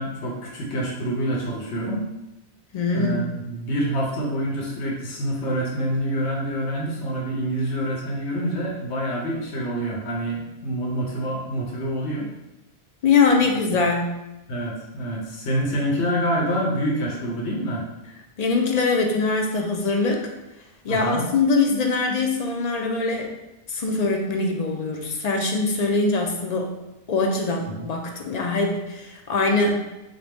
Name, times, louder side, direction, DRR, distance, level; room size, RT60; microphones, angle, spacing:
voice 1, 0.0-2.0 2.9-12.3 14.5-17.9 20.9-21.3 27.7-27.9, right 1 dB, 90° left, -2 dB, 1.0 m, -27 dB
voice 2, 2.7-3.3 13.0-14.2 18.4-20.3 20.8-23.3 23.7-26.7 27.1-29.9, left 3 dB, 55° left, 2 dB, 0.4 m, -22 dB
3.7 x 2.6 x 3.4 m, 0.96 s
omnidirectional pair, 1.1 m